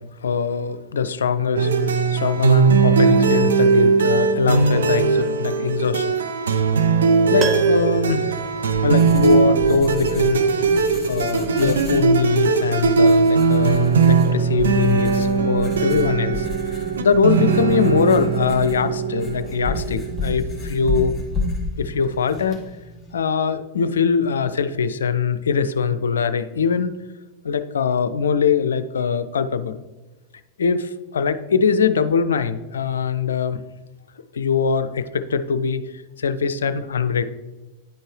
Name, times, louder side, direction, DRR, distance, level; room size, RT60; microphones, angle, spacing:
voice 1, 0.2-6.1 7.3-8.3 8.8-10.4 11.1-16.5 17.0-21.2 21.8-22.6 23.1-26.9 27.4-29.8 30.6-33.6 34.3-35.9 36.2-37.2, left 6 dB, 75° left, 12 dB, 0.4 m, -22 dB
sound 1, 1.6-20.9, right 5 dB, 75° right, 0.5 m, -19 dB
Piano, 7.4-9.5 9.8-9.9, right 3 dB, 25° right, 1.0 m, -32 dB
Writing, 8.3-23.1, left 2 dB, ahead, 1.9 m, -32 dB
10.5 x 4.4 x 3.2 m, 1.1 s
figure-of-eight pair, 95°, 0 cm